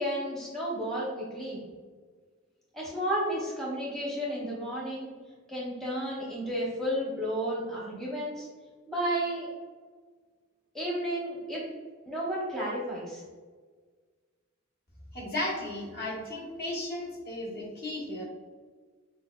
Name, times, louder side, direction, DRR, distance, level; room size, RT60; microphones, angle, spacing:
voice 1, 0.0-1.6 2.7-5.1 5.5-8.5 8.9-9.5 10.7-11.6 12.1-13.2, equal, ahead, -6 dB, 0.8 m, -32 dB
voice 2, 15.1-18.2, left 1 dB, 50° left, -4 dB, 1.1 m, -35 dB
6.3 x 2.1 x 2.2 m, 1.5 s
head